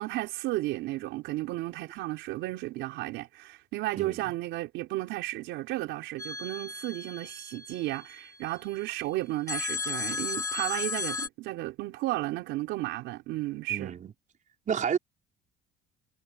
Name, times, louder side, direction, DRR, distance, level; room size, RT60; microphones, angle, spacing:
voice 1, 0.0-13.9, right 17 dB, 80° right, 3.9 m, -33 dB
voice 2, 4.0-4.3 13.7-14.1 14.7-15.0, right 7 dB, 40° right, 5.5 m, -30 dB
sound 1, 6.2-8.4 9.5-11.3, left 4 dB, 15° left, 2.0 m, -35 dB
cardioid pair, 105°, 19 cm